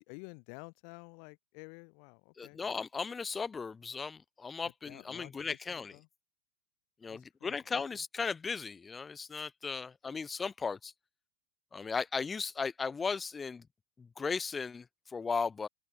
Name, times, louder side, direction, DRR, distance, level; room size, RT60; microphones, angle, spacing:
voice 1, 0.0-2.6 4.6-6.1 7.0-8.0, left 40 dB or more, 45° left, 1.6 m, -52 dB
voice 2, 2.4-5.9 7.0-10.9 11.7-13.7 14.0-15.7, left 5 dB, 15° left, 0.4 m, -36 dB
open air
figure-of-eight pair, 90°, 0 cm